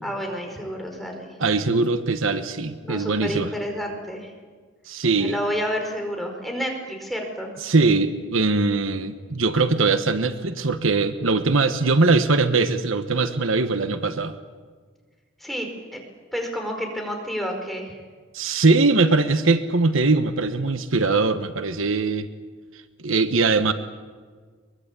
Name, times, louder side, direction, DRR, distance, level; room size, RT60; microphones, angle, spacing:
voice 1, 0.0-1.3 2.8-4.3 5.1-7.6 15.4-16.0 16.3-18.0, equal, ahead, 2 dB, 4.9 m, -30 dB
voice 2, 1.4-3.5 4.9-5.4 7.6-14.4 18.3-22.3 23.0-23.7, right 3 dB, 85° right, 10 dB, 1.3 m, -21 dB
23.0 x 23.0 x 8.4 m, 1.5 s
head